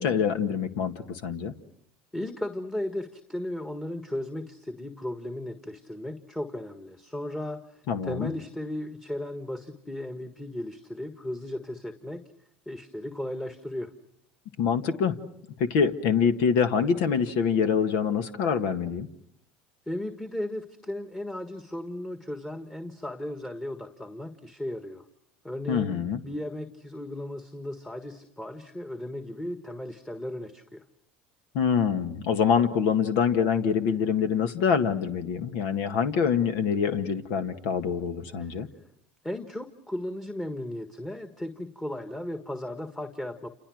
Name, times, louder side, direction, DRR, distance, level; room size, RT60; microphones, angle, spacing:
voice 1, 0.0-1.5 7.9-8.3 14.6-15.1 15.6-19.1 25.7-26.2 31.5-38.7, left 6 dB, 70° left, 8 dB, 1.8 m, -25 dB
voice 2, 2.1-12.2 12.6-13.9 19.9-25.0 25.4-30.8 38.4-38.6 39.2-43.5, left 1 dB, 10° left, 7 dB, 1.6 m, -36 dB
29.0 x 27.5 x 6.4 m, 0.74 s
supercardioid pair, 110°, 4 cm